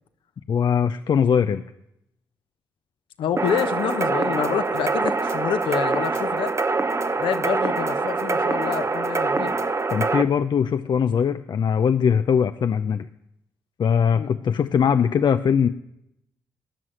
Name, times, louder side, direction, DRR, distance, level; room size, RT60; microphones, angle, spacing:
voice 1, 0.5-1.6 9.9-13.1 13.8-15.7, left 7 dB, 55° left, 9 dB, 0.6 m, -21 dB
voice 2, 3.2-6.5 7.2-9.6 14.1-14.3, left 8 dB, 75° left, 9 dB, 1.0 m, -27 dB
sound 1, 3.4-10.2, right 3 dB, 30° right, 0.9 m, -24 dB
15.5 x 6.3 x 9.6 m, 0.82 s
hypercardioid pair, 40°, 9 cm